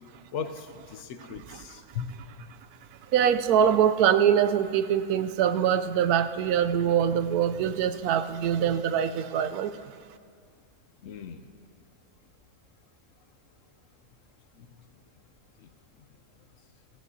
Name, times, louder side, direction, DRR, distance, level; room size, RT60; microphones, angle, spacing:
voice 1, 0.3-2.2 11.0-11.4 14.6-14.7, left 7 dB, 65° left, 9 dB, 0.9 m, -37 dB
voice 2, 3.1-9.8, right 9 dB, 90° right, 11 dB, 1.1 m, -24 dB
17.5 x 16.5 x 2.7 m, 2.2 s
omnidirectional pair, 1.5 m